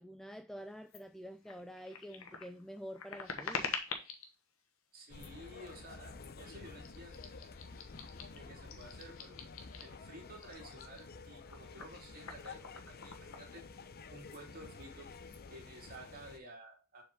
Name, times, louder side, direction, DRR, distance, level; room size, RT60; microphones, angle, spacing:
voice 1, 0.0-3.7, equal, ahead, 0.3 m, -47 dB
sound 1, 0.9-1.0 1.4-4.3 5.1-5.5 6.2-6.4 6.8-10.0 10.3-14.0 14.2-14.4 14.7-15.4, left 5 dB, 90° left, 1.3 m, -46 dB
voice 2, 4.9-7.3 8.3-9.4 9.8-13.6 14.1-15.2 15.5-17.0, right 1 dB, 45° right, 2.7 m, -53 dB
sound 2, 5.1-16.4, left 4 dB, 50° left, 0.6 m, -51 dB
6.9 x 4.8 x 3.6 m
head